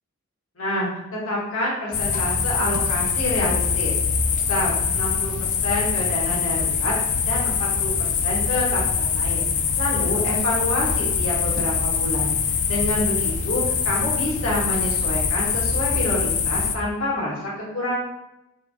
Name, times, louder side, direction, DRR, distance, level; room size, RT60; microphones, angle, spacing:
voice 1, 0.6-3.9 4.2-6.9 7.2-9.4 9.8-18.0, left 1 dB, 80° left, -4 dB, 1.3 m, -28 dB
sound 1, 1.9-16.8, left 6 dB, 40° left, 0.4 m, -23 dB
3.5 x 3.1 x 4.7 m, 0.92 s
head